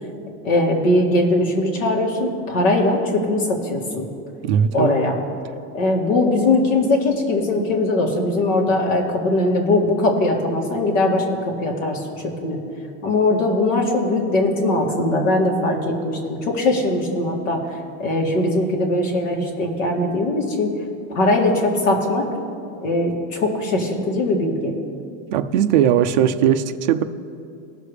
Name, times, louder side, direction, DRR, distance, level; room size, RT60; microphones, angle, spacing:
voice 1, 0.4-4.0 4.7-5.2 5.7-12.6 13.0-20.7 21.1-22.3 22.8-24.7, left 2 dB, 85° left, 0 dB, 2.4 m, -20 dB
voice 2, 4.4-4.9 25.3-27.0, right 9 dB, 40° right, 8 dB, 0.4 m, -18 dB
20.0 x 6.6 x 3.3 m, 2.5 s
supercardioid pair, 180°, 38 cm